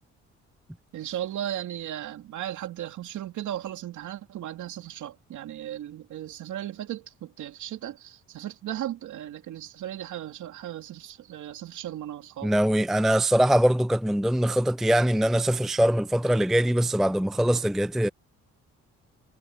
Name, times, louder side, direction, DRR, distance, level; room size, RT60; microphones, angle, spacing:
voice 1, 0.9-12.5, right 12 dB, 80° right, 2.6 m, -36 dB
voice 2, 12.4-18.1, right 1 dB, ahead, 0.5 m, -22 dB
cardioid pair, 90°, 30 cm